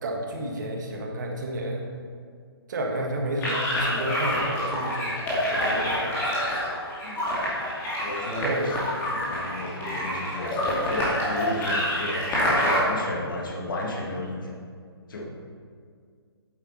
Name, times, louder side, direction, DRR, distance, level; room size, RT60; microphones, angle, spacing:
voice 1, 0.0-1.9 2.7-6.2 8.3-8.8, right 1 dB, 45° right, 1 dB, 1.5 m, -31 dB
sound 1, 3.4-12.8, equal, 15° left, 2.3 m, -27 dB
voice 2, 7.0-7.4 8.0-8.8 9.1-14.5 15.1-15.3, left 1 dB, 55° left, -1 dB, 2.0 m, -33 dB
9.4 x 8.1 x 4.3 m, 2.1 s
figure-of-eight pair, 135°, 13 cm